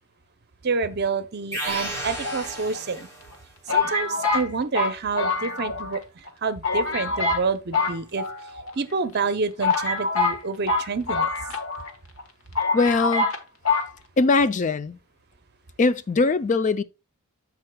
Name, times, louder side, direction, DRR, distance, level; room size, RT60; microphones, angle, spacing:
voice 1, 0.6-3.1 3.7-6.0 6.4-8.2 8.7-11.3, right 4 dB, 50° right, 0.7 m, -28 dB
sound 1, 1.5-3.4, right 1 dB, 15° left, 3.4 m, -33 dB
sound 2, 2.2-3.0 3.7-6.0 6.3-6.4 6.6-7.5 7.7-8.7 9.2-9.3 9.6-11.9 12.2-12.3 12.6-13.4 13.7-13.9, left 3 dB, 65° left, 1.3 m, -25 dB
voice 2, 12.7-13.3 14.2-15.0 15.8-16.8, left 3 dB, 35° left, 0.4 m, -21 dB
14.5 x 4.8 x 2.3 m
head